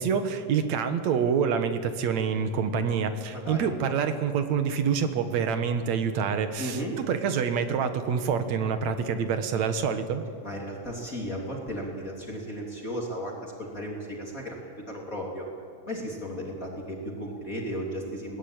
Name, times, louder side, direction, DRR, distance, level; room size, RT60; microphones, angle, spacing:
voice 1, 0.0-10.2, right 6 dB, 60° right, 8 dB, 2.4 m, -27 dB
voice 2, 3.3-3.7 6.6-6.9 10.4-15.5 15.9-18.4, equal, 25° left, -1 dB, 3.2 m, -35 dB
20.5 x 18.5 x 8.8 m, 2.2 s
omnidirectional pair, 3.8 m